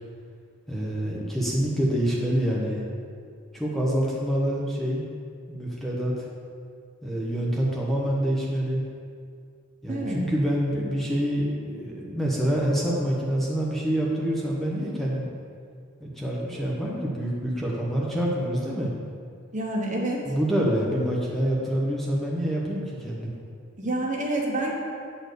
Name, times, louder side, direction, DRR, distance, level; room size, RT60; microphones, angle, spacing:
voice 1, 0.7-2.8 3.5-5.1 5.5-6.1 7.0-8.8 9.8-15.3 16.0-18.9 20.3-23.3, equal, ahead, -5 dB, 0.9 m, -26 dB
voice 2, 9.9-10.2 19.5-20.2 23.8-24.7, right 1 dB, 35° right, -2 dB, 1.2 m, -27 dB
8.0 x 4.3 x 6.7 m, 2.2 s
head